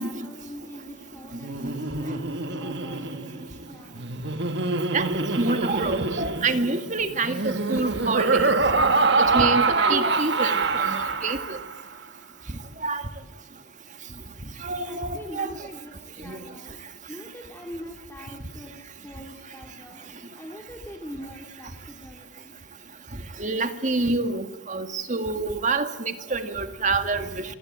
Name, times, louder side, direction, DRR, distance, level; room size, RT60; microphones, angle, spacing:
voice 1, 0.0-4.1 14.8-20.0 20.3-22.6, equal, 10° left, 1 dB, 3.4 m, -43 dB
Laughter, 1.3-11.8, right 3 dB, 55° right, 1.8 m, -25 dB
voice 2, 4.9-8.5 9.3-11.6 12.8-13.0 14.6-15.5 16.3-16.4 23.4-27.4, right 3 dB, 35° right, 8 dB, 1.9 m, -27 dB
27.5 x 24.5 x 8.8 m, 0.91 s
head